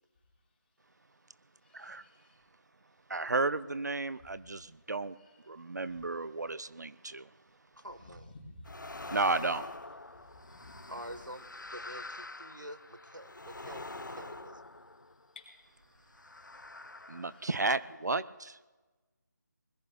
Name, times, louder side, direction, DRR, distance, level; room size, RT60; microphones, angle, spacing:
voice 1, 1.6-2.4 8.3-8.7 9.0-9.1 15.4-15.5 17.2-17.5, left 2 dB, 30° left, -2 dB, 4.1 m, -52 dB
voice 2, 3.1-5.1 5.5-7.2 9.1-9.7 17.1-18.6, right 3 dB, 65° right, 15 dB, 0.5 m, -33 dB
voice 3, 7.8-8.3 10.9-14.6, equal, 85° right, 11 dB, 1.2 m, -47 dB
sound 1, 8.7-15.4 16.1-17.9, left 2 dB, 80° left, 0.6 m, -46 dB
25.5 x 21.0 x 2.2 m, 1.2 s
figure-of-eight pair, 160°, 10 cm